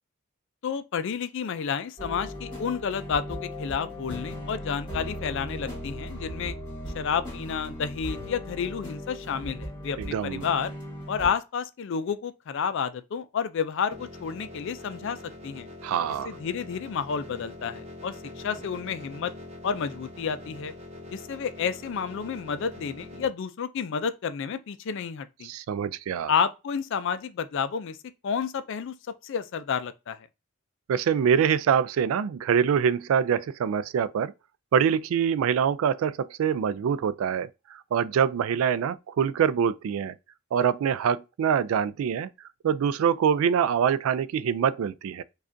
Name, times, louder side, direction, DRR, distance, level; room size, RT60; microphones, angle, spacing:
voice 1, 0.6-6.6 6.9-10.7 11.1-15.2 15.4-15.7 16.2-19.3 19.6-20.7 21.1-25.5 26.3-28.0 28.2-28.9 29.2-30.2, left 6 dB, 60° left, 0.4 m, -30 dB
sound 1, 2.0-11.3, equal, 25° left, 1.6 m, -37 dB
voice 2, 10.0-10.4 15.8-16.4 25.4-26.3 30.9-34.3 34.7-40.1 40.5-42.3 42.6-45.2, right 7 dB, 75° right, 0.3 m, -25 dB
sound 2, 13.9-23.3, left 2 dB, 30° right, 0.6 m, -44 dB
4.9 x 2.4 x 2.6 m
head